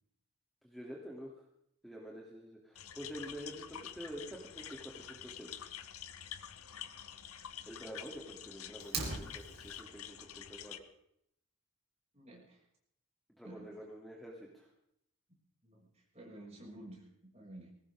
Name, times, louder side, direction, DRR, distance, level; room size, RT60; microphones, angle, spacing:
voice 1, 0.6-1.3 1.8-5.6 7.7-10.9 13.4-14.7, equal, ahead, -3 dB, 2.7 m, -48 dB
sound 1, 2.8-10.8, left 9 dB, 80° left, 1.0 m, -48 dB
Fire, 8.8-9.8, right 4 dB, 45° right, 4.0 m, -39 dB
voice 2, 12.1-12.6 13.4-13.7 15.6-17.7, right 1 dB, 30° right, -3 dB, 6.3 m, -52 dB
21.5 x 18.0 x 3.6 m, 0.72 s
head